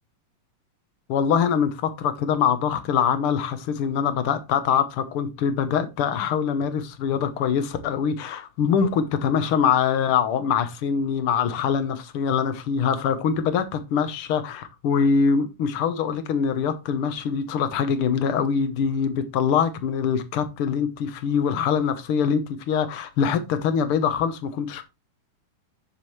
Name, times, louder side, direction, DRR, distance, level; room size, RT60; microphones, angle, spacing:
voice 1, 1.1-24.8, left 7 dB, 80° left, 1.2 m, -23 dB
9.8 x 7.5 x 3.1 m
omnidirectional pair, 3.9 m